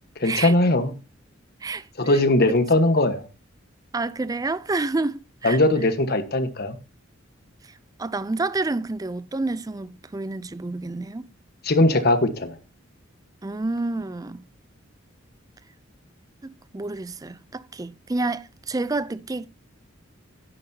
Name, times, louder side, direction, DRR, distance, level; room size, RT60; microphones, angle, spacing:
voice 1, 0.2-0.9 2.0-3.2 5.4-6.8 11.6-12.6, left 2 dB, 50° left, 1.3 m, -20 dB
voice 2, 3.9-5.6 8.0-11.3 13.4-14.4 16.4-19.5, right 3 dB, 20° right, 0.4 m, -29 dB
11.0 x 10.5 x 2.8 m
head